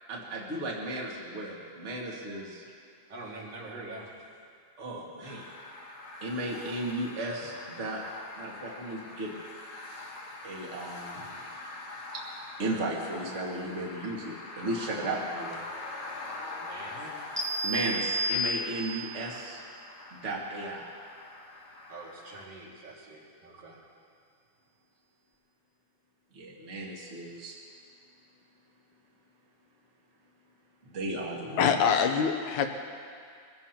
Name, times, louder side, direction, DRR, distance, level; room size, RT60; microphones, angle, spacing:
voice 1, 0.1-2.6 4.8-5.5 6.2-8.0 8.4-9.3 10.4-11.6 12.1-12.2 12.6-15.6 16.9-17.1 17.6-19.6 20.1-20.9 26.3-27.6 30.9-31.8, right 1 dB, 25° right, -3 dB, 1.9 m, -35 dB
voice 2, 3.1-4.1 11.1-11.2 16.6-17.1 21.9-23.9, right 2 dB, 55° right, -4 dB, 3.4 m, -44 dB
sound 1, 5.2-22.5, left 2 dB, 60° left, 2.6 m, -44 dB
sound 2, 17.4-19.1, equal, 5° right, 1.6 m, -31 dB
voice 3, 31.6-32.7, left 7 dB, 80° left, 6 dB, 2.4 m, -24 dB
23.5 x 16.0 x 3.0 m, 2.2 s
omnidirectional pair, 3.4 m